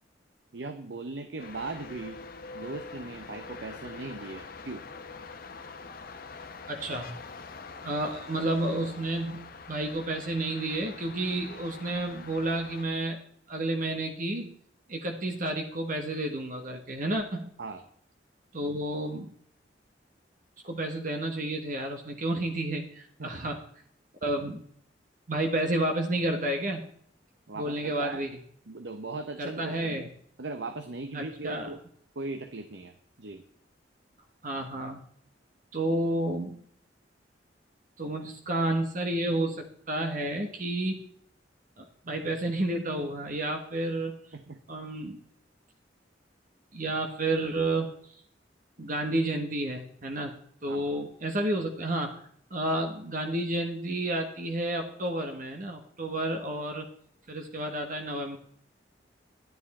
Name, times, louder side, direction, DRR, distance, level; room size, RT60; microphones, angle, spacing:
voice 1, 0.5-2.2 2.5-4.8 17.6-17.8 23.2-23.5 27.5-28.3 28.7-30.0 30.4-31.8 32.2-33.4 44.3-44.6 50.7-50.8, right 3 dB, 70° right, 7 dB, 0.9 m, -39 dB
sound 1, 1.4-12.8, left 4 dB, 50° left, 0.9 m, -44 dB
voice 2, 6.7-7.1 7.8-13.2 13.5-14.5 14.9-17.5 18.5-19.3 20.6-23.6 24.2-24.6 25.3-26.9 27.5-28.3 29.4-30.1 31.1-31.7 34.4-35.0 35.7-36.6 38.0-41.0 41.8-44.2 44.7-45.2 46.7-48.2 48.8-50.3 50.6-56.9 57.3-58.4, right 1 dB, 45° right, 4 dB, 1.2 m, -31 dB
11.0 x 10.0 x 4.2 m, 0.64 s
head